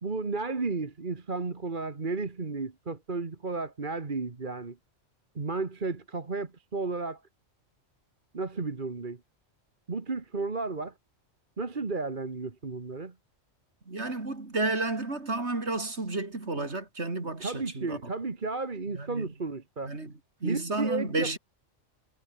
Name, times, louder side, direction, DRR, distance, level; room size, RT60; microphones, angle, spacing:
voice 1, 0.0-4.8 5.4-7.2 8.3-9.2 9.9-10.9 11.6-13.1 17.4-19.9 20.4-21.4, right 3 dB, 40° right, 1.8 m, -33 dB
voice 2, 13.9-18.0 18.9-19.3 19.8-20.1 20.4-21.4, right 2 dB, 60° right, 3.9 m, -31 dB
omnidirectional pair, 1.3 m